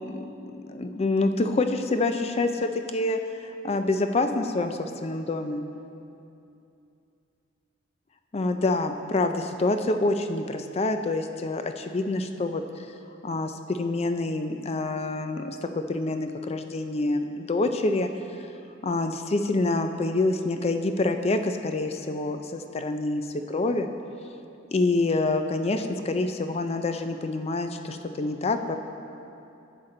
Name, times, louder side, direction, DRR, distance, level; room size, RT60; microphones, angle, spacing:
voice 1, 0.0-3.2 3.6-5.6 8.3-12.6 13.2-18.1 18.8-23.9 24.7-28.8, left 2 dB, 30° left, 7 dB, 0.4 m, -27 dB
11.0 x 7.4 x 3.8 m, 2.7 s
head